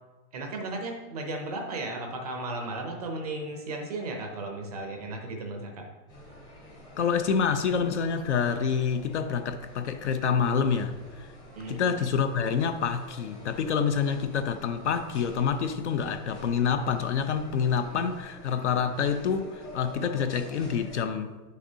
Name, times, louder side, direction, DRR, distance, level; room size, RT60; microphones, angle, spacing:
voice 1, 0.3-5.9 11.5-11.8, right 2 dB, 25° right, 0.6 m, -35 dB
sound 1, 6.1-21.0, equal, 10° left, 0.8 m, -48 dB
voice 2, 7.0-11.3 11.7-21.4, left 6 dB, 50° left, 0.5 m, -27 dB
9.3 x 6.5 x 2.7 m
hypercardioid pair, 165°, 48 cm